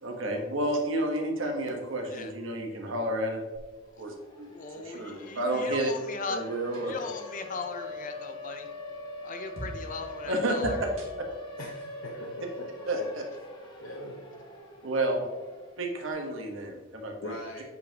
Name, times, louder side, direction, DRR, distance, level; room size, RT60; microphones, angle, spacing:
voice 1, 0.0-3.4 4.0-4.5 4.7-5.9 6.3-6.9 10.3-10.9 12.9-13.2 14.8-15.2 15.8-17.3, right 1 dB, 70° right, 3 dB, 1.2 m, -30 dB
Siren, 3.6-3.7 4.0-16.0, left 1 dB, 20° left, 1.0 m, -44 dB
voice 2, 4.5-6.4 6.8-8.7 9.2-10.8, left 4 dB, 40° left, 7 dB, 0.5 m, -38 dB
sound 1, 6.7-12.2, right 1 dB, 90° right, 1.9 m, -46 dB
voice 3, 11.6-13.1 13.8-14.2 17.2-17.6, left 1 dB, 70° left, -1 dB, 0.9 m, -41 dB
8.2 x 5.5 x 2.9 m, 1.3 s
head